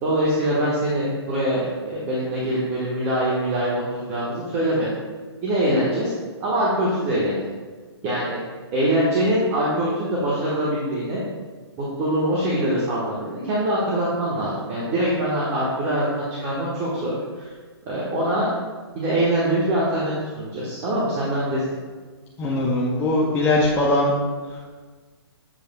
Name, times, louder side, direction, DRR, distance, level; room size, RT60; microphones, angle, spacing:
voice 1, 0.0-4.9 5.4-6.1 6.4-7.4 8.0-8.4 8.7-11.2 11.8-17.5 17.9-18.5 18.9-21.6, right 1 dB, 25° right, -6 dB, 1.2 m, -23 dB
voice 2, 22.4-24.1 24.5-24.6, left 1 dB, 15° left, -5 dB, 0.6 m, -21 dB
7.4 x 6.8 x 2.2 m, 1.4 s
hypercardioid pair, 145°, 14 cm